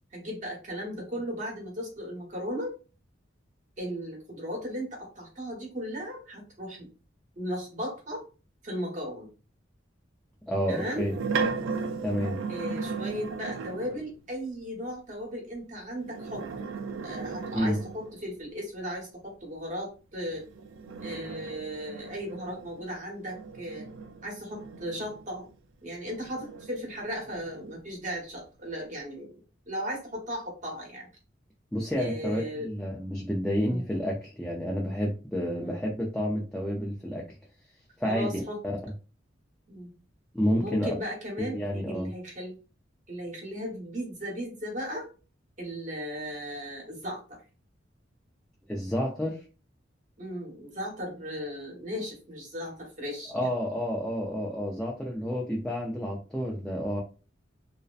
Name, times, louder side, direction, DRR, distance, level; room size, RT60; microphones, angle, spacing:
voice 1, 0.1-2.7 3.8-6.9 7.4-8.2 8.6-9.3 10.7-11.1 12.5-16.7 17.0-20.4 21.0-23.9 24.2-25.4 25.8-29.3 29.7-31.1 32.0-32.7 33.7-33.8 35.6-35.8 38.0-38.6 39.7-39.9 40.6-41.6 41.9-42.6 43.1-45.1 45.6-47.4 50.2-53.5, equal, 40° right, -1 dB, 1.0 m, -36 dB
voice 2, 10.5-11.1 12.0-12.4 17.5-17.8 31.7-37.3 38.0-38.4 40.3-40.9 41.4-42.1 48.7-49.4 53.3-57.0, equal, 5° left, -2 dB, 0.4 m, -30 dB
sound 1, 10.7-14.1 16.0-18.3 20.3-25.5 26.0-27.8, right 5 dB, 85° right, 0.3 m, -36 dB
2.6 x 2.1 x 2.3 m, 0.34 s
head